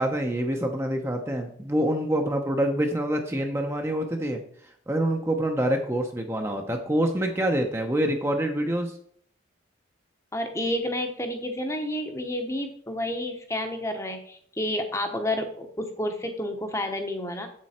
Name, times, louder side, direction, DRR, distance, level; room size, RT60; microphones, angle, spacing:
voice 1, 0.0-4.4 4.9-8.9, right 1 dB, 15° right, 3 dB, 0.7 m, -26 dB
voice 2, 10.3-17.5, left 1 dB, 15° left, 6 dB, 0.9 m, -30 dB
7.5 x 7.4 x 4.3 m, 0.63 s
head